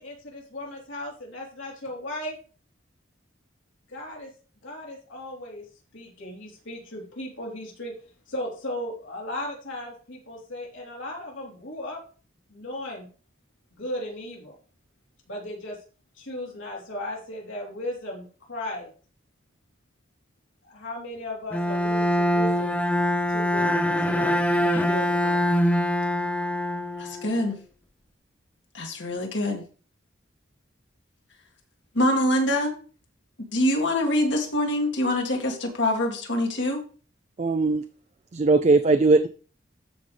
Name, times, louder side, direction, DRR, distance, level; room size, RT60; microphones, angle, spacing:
voice 1, 0.0-2.4 3.9-4.3 4.6-5.7 5.9-7.9 8.3-12.0 12.5-13.1 13.7-14.6 15.3-15.8 16.2-18.9 20.6-22.8 23.3-25.4, left 1 dB, 85° left, -2 dB, 3.7 m, -36 dB
Bowed string instrument, 21.5-27.5, equal, 10° left, 0.6 m, -24 dB
voice 2, 27.0-27.6 28.7-29.6 31.9-32.7 33.5-36.8, left 1 dB, 70° left, 1 dB, 2.2 m, -24 dB
voice 3, 37.4-37.8 38.3-39.3, right 3 dB, 35° right, 9 dB, 0.4 m, -19 dB
14.0 x 5.3 x 3.3 m, 0.38 s
head